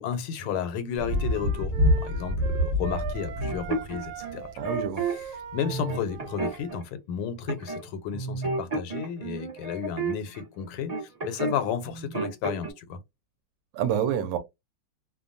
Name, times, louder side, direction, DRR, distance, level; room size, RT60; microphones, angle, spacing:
voice 1, 0.0-1.7 2.0-4.5 5.5-10.9 11.2-13.0, left 8 dB, 85° left, 1.5 m, -32 dB
Thunder, 1.0-4.9 6.1-6.2, left 1 dB, 10° right, 1.0 m, -27 dB
sound 1, 1.0-6.8, right 8 dB, 85° right, 0.8 m, -39 dB
sound 2, 3.4-5.1 5.6-6.8 7.5-7.8 8.1-11.6 11.8-12.7, right 4 dB, 40° right, 0.5 m, -32 dB
voice 2, 4.6-5.0 13.7-14.4, right 9 dB, 70° right, 1.2 m, -27 dB
3.3 x 2.2 x 2.4 m
omnidirectional pair, 2.3 m